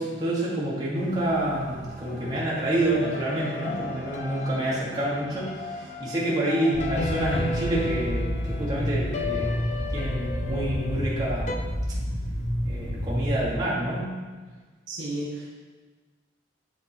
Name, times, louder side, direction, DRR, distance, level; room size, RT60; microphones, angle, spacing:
voice 1, 0.0-9.5 9.9-11.6 12.7-14.1, right 1 dB, 20° right, -7 dB, 1.4 m, -28 dB
sound 1, 0.9-6.6, right 1 dB, 45° right, 1.0 m, -44 dB
sound 2, 2.0-11.6, left 2 dB, 40° left, 0.4 m, -35 dB
sound 3, 6.7-13.4, equal, 75° left, 1.1 m, -29 dB
voice 2, 14.9-15.5, right 1 dB, 85° right, -3 dB, 1.4 m, -32 dB
9.4 x 3.5 x 3.6 m, 1.4 s
head